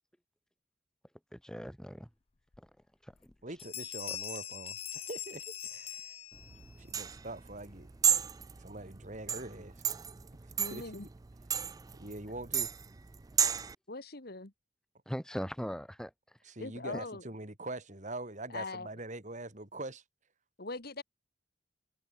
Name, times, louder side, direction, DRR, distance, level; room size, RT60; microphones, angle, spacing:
voice 1, 1.3-2.1 2.6-2.7 3.0-3.3 4.1-4.2 15.1-16.1, equal, 5° left, 2.7 m, -40 dB
Bell, 2.5-2.6 3.1-3.3 3.6-6.7, left 10 dB, 30° left, 0.5 m, -42 dB
voice 2, 3.4-6.2 6.8-7.9 8.6-9.8 10.7-10.8 12.0-12.7 16.4-20.0, right 2 dB, 40° right, 3.7 m, -43 dB
sound 1, 6.4-13.7, right 8 dB, 20° right, 0.3 m, -33 dB
voice 3, 10.6-11.1 13.9-14.5 16.6-17.2 18.5-18.9 20.6-21.0, left 3 dB, 55° left, 2.0 m, -41 dB
head